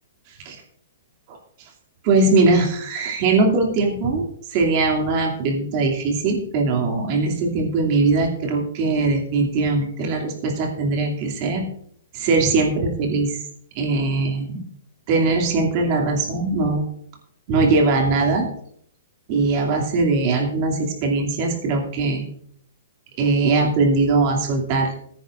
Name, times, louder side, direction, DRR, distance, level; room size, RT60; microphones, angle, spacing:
voice 1, 2.0-11.7 12.1-13.4 13.7-14.6 15.1-16.8 17.5-18.5 19.3-22.2 23.2-24.9, right 3 dB, 35° right, 1 dB, 2.5 m, -21 dB
18.5 x 10.0 x 2.5 m, 0.66 s
hypercardioid pair, 160°, 0 cm